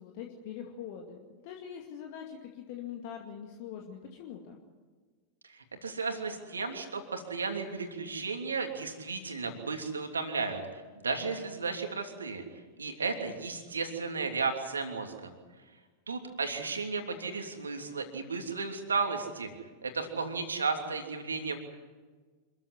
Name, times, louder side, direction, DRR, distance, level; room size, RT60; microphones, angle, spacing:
voice 1, 0.0-4.6, left 8 dB, 50° left, 1 dB, 2.3 m, -43 dB
voice 2, 5.5-12.4 12.8-15.3 16.1-19.5 19.8-21.6, right 4 dB, 75° right, 4 dB, 3.1 m, -34 dB
26.5 x 14.5 x 9.9 m, 1.4 s
figure-of-eight pair, 90°, 0 cm